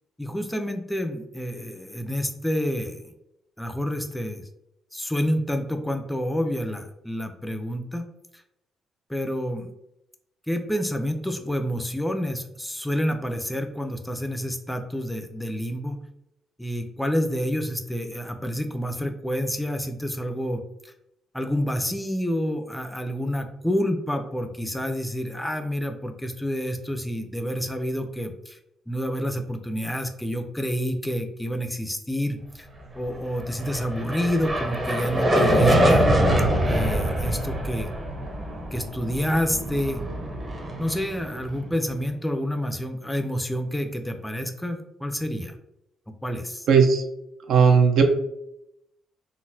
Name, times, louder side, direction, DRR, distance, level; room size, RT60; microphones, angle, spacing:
voice 1, 0.2-3.1 3.6-4.4 4.9-8.1 9.1-9.7 10.5-16.0 16.6-20.9 21.3-28.6 28.9-32.7 32.9-36.1 36.6-37.9 38.7-40.0 40.8-45.5 46.2-46.7, equal, 5° left, 6 dB, 0.4 m, -28 dB
sound 1, 33.4-41.8, right 1 dB, 30° right, 0.8 m, -24 dB
voice 2, 46.7-47.0 47.5-48.0, right 6 dB, 70° right, 4 dB, 0.5 m, -16 dB
3.8 x 2.1 x 2.6 m, 0.82 s
cardioid pair, 90°, 0 cm